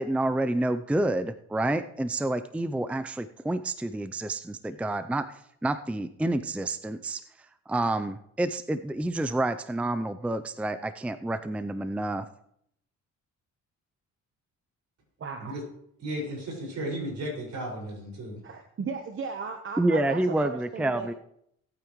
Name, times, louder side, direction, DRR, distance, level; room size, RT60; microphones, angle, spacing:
voice 1, 0.0-7.2 7.7-12.3 19.8-21.1, right 1 dB, 5° right, 11 dB, 0.5 m, -28 dB
voice 2, 15.2-15.6 18.4-21.1, right 5 dB, 45° right, 5 dB, 1.1 m, -36 dB
voice 3, 16.0-18.4, right 1 dB, 65° right, -1 dB, 5.7 m, -34 dB
18.0 x 8.8 x 3.1 m, 0.72 s
cardioid pair, 90°, 30 cm